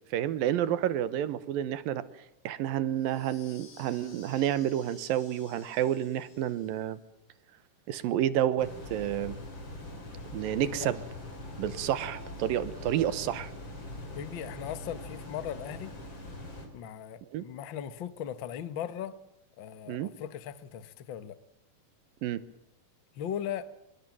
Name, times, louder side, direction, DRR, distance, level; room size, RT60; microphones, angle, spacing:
voice 1, 0.1-2.0 2.4-7.0 7.9-9.4 10.3-11.0 11.6-13.5 17.3-17.4 19.9-20.1 22.2-22.4, right 11 dB, 85° right, 2.9 m, -30 dB
sound 1, 2.9-7.0, left 6 dB, 85° left, 5.8 m, -56 dB
sound 2, 8.6-16.7, left 2 dB, 30° left, 4.8 m, -42 dB
sound 3, 10.4-10.6 10.9-13.5, right 3 dB, 60° right, 5.0 m, -56 dB
voice 2, 10.6-10.9 14.1-15.9 16.7-19.1 19.6-21.4 23.1-23.7, left 9 dB, 60° left, 1.3 m, -38 dB
25.0 x 22.5 x 7.4 m
omnidirectional pair, 4.0 m